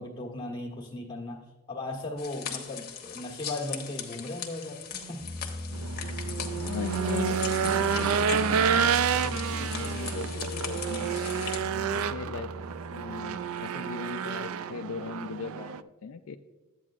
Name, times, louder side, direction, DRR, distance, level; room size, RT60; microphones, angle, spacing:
voice 1, 0.0-4.8 5.1-5.3, left 2 dB, 20° left, -2 dB, 1.4 m, -37 dB
sound 1, 2.2-11.6, left 8 dB, 45° left, 1.1 m, -40 dB
sound 2, 4.7-13.5, left 1 dB, ahead, 1.5 m, -38 dB
Race car auto racing / Engine, 5.7-15.8, right 7 dB, 70° right, 0.3 m, -29 dB
voice 2, 6.6-8.9 9.2-11.1 11.7-12.5 12.9-16.4, left 5 dB, 65° left, 7 dB, 0.4 m, -38 dB
12.5 x 8.6 x 2.5 m, 1.2 s
head